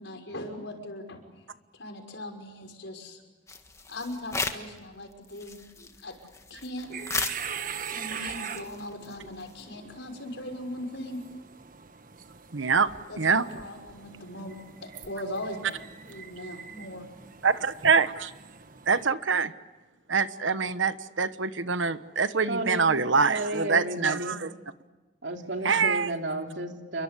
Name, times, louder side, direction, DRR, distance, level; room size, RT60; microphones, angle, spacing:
voice 1, 0.0-1.4 1.7-3.2 3.9-6.2 6.5-6.9 7.9-11.2 13.1-17.1, left 1 dB, 75° left, 3 dB, 5.7 m, -39 dB
sound 1, 3.5-4.8 5.1-9.7, left 3 dB, 15° left, 1.7 m, -36 dB
sound 2, 6.8-19.1, right 7 dB, 45° right, 1.3 m, -42 dB
voice 2, 12.5-12.9 13.2-13.4 17.4-18.3 18.9-19.5 20.1-24.5 25.6-26.1, right 5 dB, 85° right, 12 dB, 1.2 m, -25 dB
voice 3, 22.5-22.9 23.3-24.4 25.2-27.0, right 1 dB, 65° right, 3 dB, 3.4 m, -32 dB
29.0 x 23.5 x 8.4 m, 1.2 s
head